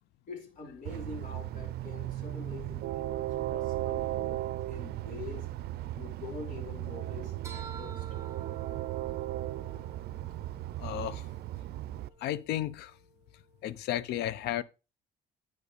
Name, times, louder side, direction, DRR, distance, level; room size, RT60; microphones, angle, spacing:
voice 1, 0.3-5.5 5.9-8.1, left 4 dB, 50° left, 3.4 m, -45 dB
Train, 0.9-12.1, right 14 dB, 70° right, 0.5 m, -36 dB
sound 1, 7.4-14.0, right 5 dB, 15° right, 1.5 m, -51 dB
voice 2, 10.8-11.3 12.2-12.9 13.6-14.6, left 12 dB, 75° left, 0.6 m, -33 dB
9.3 x 5.2 x 4.9 m
cardioid pair, 110°, 17 cm